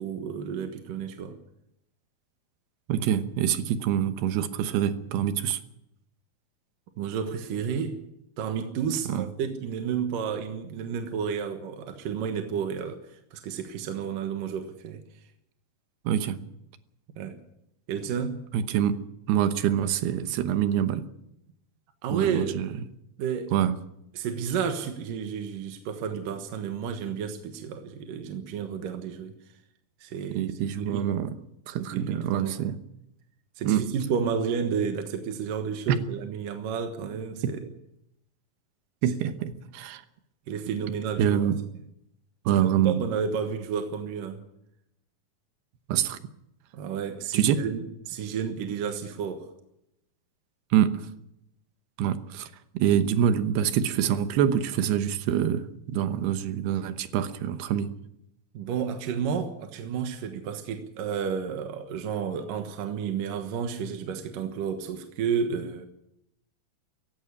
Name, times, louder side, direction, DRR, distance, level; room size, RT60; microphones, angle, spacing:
voice 1, 0.0-1.4 7.0-8.0 8.4-15.0 17.2-17.4 17.9-18.5 22.0-22.6 23.2-23.5 24.2-29.4 30.0-31.1 31.8-32.5 33.6-37.6 40.5-41.5 42.5-44.4 46.7-49.5 58.5-65.9, right 7 dB, 65° right, 6 dB, 2.8 m, -31 dB
voice 2, 2.9-5.6 9.1-9.2 16.0-16.4 18.5-19.0 19.3-21.1 22.1-22.7 23.5-23.8 30.3-31.4 31.7-32.8 33.6-33.9 35.9-36.0 39.0-40.0 41.2-41.6 42.5-43.0 45.9-46.2 47.3-47.6 50.7-51.1 52.0-57.9, right 9 dB, 85° right, 10 dB, 3.1 m, -25 dB
17.0 x 16.0 x 9.9 m, 0.82 s
omnidirectional pair, 4.5 m